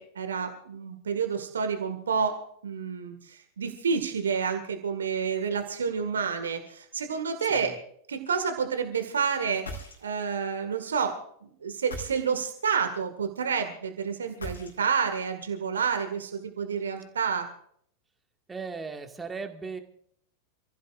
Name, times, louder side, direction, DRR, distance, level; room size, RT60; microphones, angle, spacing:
voice 1, 0.0-7.7 8.1-9.7 10.0-17.5, right 6 dB, 70° right, 7 dB, 1.9 m, -29 dB
sound 1, 9.5-10.4 11.7-12.6 14.3-15.1, equal, 75° left, 3.2 m, -40 dB
voice 2, 18.5-19.8, right 4 dB, 15° right, 5 dB, 2.0 m, -37 dB
28.5 x 15.0 x 2.5 m, 0.64 s
figure-of-eight pair, 90°, 0 cm